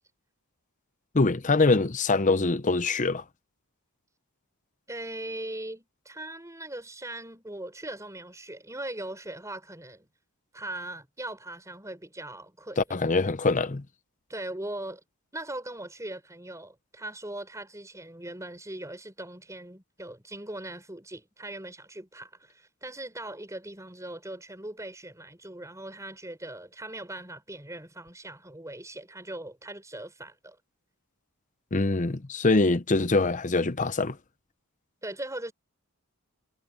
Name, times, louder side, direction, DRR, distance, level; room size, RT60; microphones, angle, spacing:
voice 1, 1.1-3.2 12.8-13.8 31.7-34.2, left 3 dB, 35° left, 0.7 m, -24 dB
voice 2, 4.9-10.1 10.5-12.8 14.3-15.0 15.3-30.6 35.0-35.5, right 1 dB, 15° right, 5.1 m, -40 dB
head